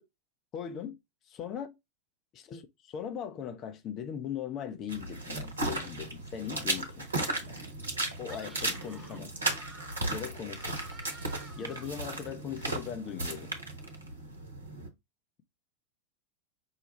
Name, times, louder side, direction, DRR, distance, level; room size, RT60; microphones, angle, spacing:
voice 1, 0.5-1.0 1.3-1.7 2.5-7.5 8.2-9.3 10.1-10.8 11.6-13.5, left 8 dB, 35° left, 0.7 m, -39 dB
sound 1, 4.9-14.9, right 2 dB, 75° right, 1.0 m, -35 dB
Screaming, 8.3-12.2, right 2 dB, 10° right, 1.1 m, -52 dB
5.6 x 2.3 x 3.0 m
figure-of-eight pair, 85°, 0 cm